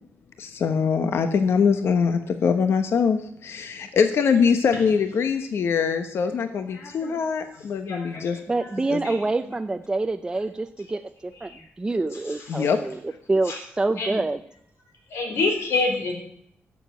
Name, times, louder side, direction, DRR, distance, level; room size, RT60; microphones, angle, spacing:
voice 1, 0.4-8.4 8.9-9.0 12.5-12.8, left 6 dB, 70° left, 8 dB, 1.0 m, -23 dB
voice 2, 6.7-7.1 7.8-8.2 9.0-9.2 11.5-11.6 13.5-13.6 14.0-14.2 15.1-16.1, left 3 dB, 85° left, 1 dB, 3.5 m, -27 dB
voice 3, 8.5-11.5 11.8-13.0 13.3-14.4, right 2 dB, 15° right, 8 dB, 0.5 m, -26 dB
12.0 x 7.2 x 7.5 m, 0.69 s
wide cardioid pair, 135°, 4 cm